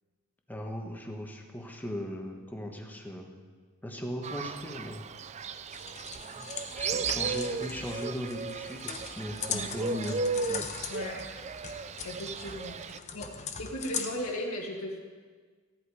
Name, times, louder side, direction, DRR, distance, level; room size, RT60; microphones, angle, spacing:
voice 1, 0.5-3.3 3.8-5.0 6.3-6.5 6.7-10.2 10.5-10.7, equal, 10° left, 2 dB, 1.3 m, -38 dB
Fowl, 4.2-13.0, right 5 dB, 30° right, 0.3 m, -35 dB
sound 1, 5.7-14.3, left 6 dB, 30° left, 0.9 m, -40 dB
voice 2, 10.9-11.2 11.7-13.3 13.6-15.0, left 1 dB, 80° left, -1 dB, 1.7 m, -37 dB
15.0 x 11.0 x 4.9 m, 1.5 s
head